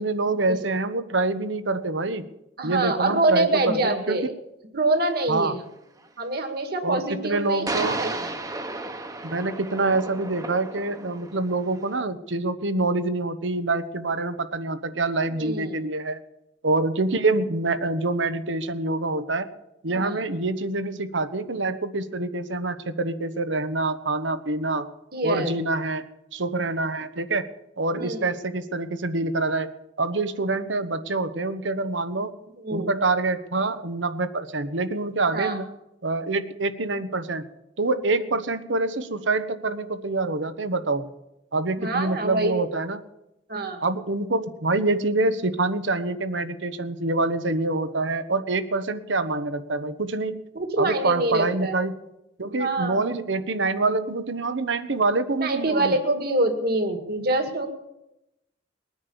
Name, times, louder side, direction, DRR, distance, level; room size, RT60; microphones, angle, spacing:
voice 1, 0.0-2.3 2.6-4.2 5.3-5.5 6.8-8.0 9.2-16.2 16.6-19.5 19.8-24.9 25.2-26.1 26.3-27.5 27.8-32.3 32.7-35.6 36.0-37.5 37.8-41.1 41.5-43.0 43.8-50.4 50.8-51.9 52.4-56.0, right 2 dB, 80° right, 11 dB, 1.1 m, -26 dB
voice 2, 2.6-4.3 4.7-5.6 6.2-8.3 15.4-15.8 19.9-20.2 25.1-25.5 27.9-28.3 32.6-33.0 35.3-35.6 41.8-42.6 43.5-43.8 50.6-51.8 52.5-53.1 55.4-57.7, right 2 dB, 55° right, 6 dB, 2.0 m, -25 dB
sound 1, 4.9-5.0 7.7-12.0, right 2 dB, 20° right, 1.0 m, -34 dB
21.0 x 9.6 x 7.0 m, 0.90 s
head